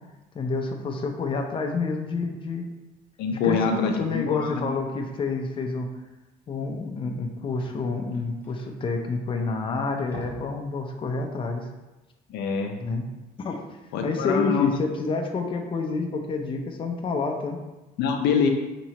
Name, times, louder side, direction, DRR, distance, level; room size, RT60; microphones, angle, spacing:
voice 1, 0.3-2.7 3.4-5.9 6.5-11.7 12.8-13.0 13.4-13.6 14.0-17.6, left 3 dB, 30° left, 3 dB, 0.6 m, -28 dB
voice 2, 3.2-4.7 12.3-12.8 13.9-14.8 18.0-18.5, left 6 dB, 80° left, 4 dB, 0.6 m, -25 dB
sound 1, 6.5-6.6 6.9-7.0 7.2-9.5 9.9-10.6 11.0-11.1 11.6-11.7, equal, 10° left, 1.3 m, -45 dB
5.4 x 3.0 x 2.9 m, 1.1 s
cardioid pair, 110°, 17 cm